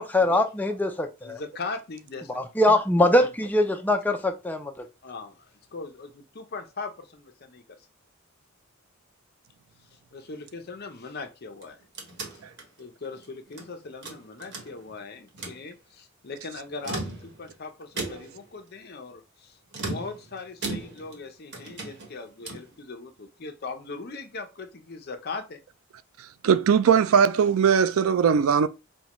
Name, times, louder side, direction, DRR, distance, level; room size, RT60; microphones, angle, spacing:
voice 1, 0.0-1.4 2.3-4.9, left 1 dB, 10° left, 0.5 m, -23 dB
voice 2, 1.2-2.7 5.0-7.6 9.9-11.8 12.3-12.4 12.8-25.6, left 3 dB, 50° left, 0.6 m, -39 dB
sound 1, 11.5-13.7 14.0-15.0 15.3-15.6 16.7-17.5 18.0-18.5 19.7-21.2 21.5-22.7, right 3 dB, 55° right, 1.2 m, -37 dB
voice 3, 26.4-28.7, right 7 dB, 80° right, 0.4 m, -19 dB
5.3 x 2.2 x 3.0 m
head